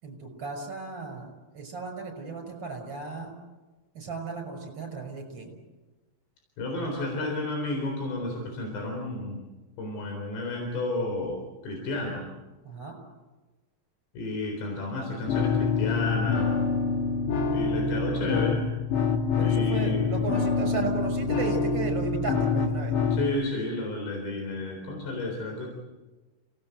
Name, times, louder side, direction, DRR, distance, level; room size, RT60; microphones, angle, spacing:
voice 1, 0.0-3.4 3.9-5.6 12.6-13.0 19.4-23.0, right 4 dB, 25° right, 5 dB, 6.3 m, -35 dB
voice 2, 6.6-9.5 9.8-12.3 14.1-16.6 17.5-18.7 19.4-20.1 23.1-25.7, left 2 dB, 85° left, 1 dB, 6.2 m, -32 dB
sound 1, 15.3-23.3, left 5 dB, 50° left, 3.5 m, -26 dB
29.0 x 19.0 x 8.0 m, 1.2 s
omnidirectional pair, 4.9 m